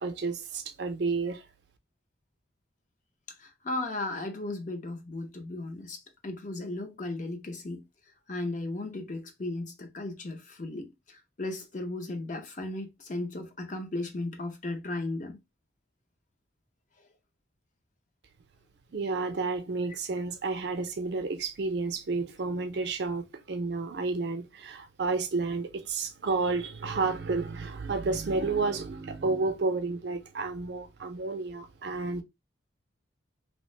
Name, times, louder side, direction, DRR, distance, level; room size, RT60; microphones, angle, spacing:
voice 1, 0.0-1.4 18.9-32.2, right 3 dB, 60° right, 0.5 m, -31 dB
voice 2, 3.4-7.8 8.3-15.4, left 2 dB, 40° left, 0.6 m, -36 dB
2.8 x 2.0 x 3.1 m
head